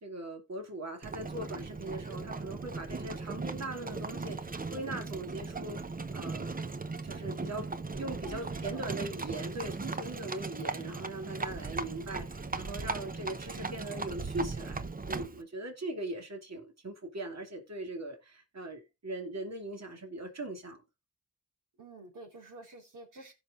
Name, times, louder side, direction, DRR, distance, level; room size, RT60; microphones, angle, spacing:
voice 1, 0.0-5.8 6.1-6.5 7.0-7.7 7.9-20.8, right 2 dB, 55° right, 2.6 m, -40 dB
Livestock farm animals working animals, 1.0-15.4, right 3 dB, 25° right, 0.8 m, -38 dB
voice 2, 8.2-8.9 21.8-23.3, right 2 dB, 70° right, 3.9 m, -49 dB
16.0 x 5.7 x 2.5 m
cardioid pair, 45°, 32 cm